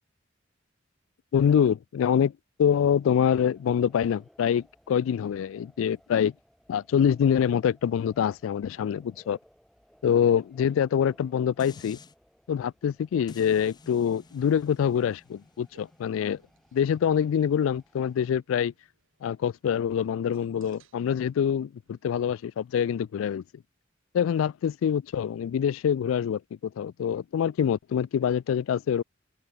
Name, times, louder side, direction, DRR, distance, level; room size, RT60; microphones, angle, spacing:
voice 1, 1.3-2.3 2.6-6.3 6.7-9.4 10.0-12.0 12.5-16.4 16.7-18.7 19.2-23.4 24.1-29.0, left 8 dB, 80° left, 0.3 m, -25 dB
sound 1, 2.8-18.3, equal, ahead, 3.6 m, -62 dB
sound 2, 11.6-12.1 13.3-18.4 18.9-19.0, left 3 dB, 20° left, 0.5 m, -52 dB
sound 3, 14.2-22.6, right 5 dB, 90° right, 4.9 m, -69 dB
open air
head